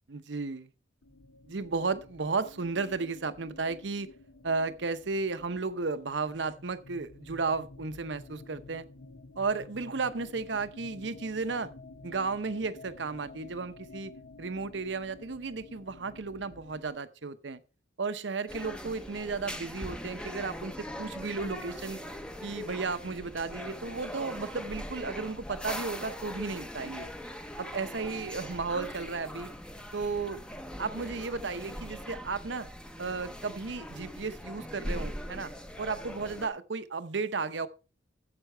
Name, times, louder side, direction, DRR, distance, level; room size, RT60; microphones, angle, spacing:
voice 1, 0.1-0.7 1.5-4.1 4.4-8.8 9.4-11.7 12.0-14.1 14.4-17.6 18.0-22.0 22.4-27.1 27.6-29.5 29.9-30.4 30.8-32.7 33.0-35.5 35.8-37.7, right 4 dB, 65° right, 0.8 m, -34 dB
sound 1, 1.0-16.9, left 2 dB, 70° left, 0.9 m, -51 dB
sound 2, 18.5-36.5, equal, 5° left, 0.8 m, -41 dB
9.7 x 7.6 x 4.5 m
head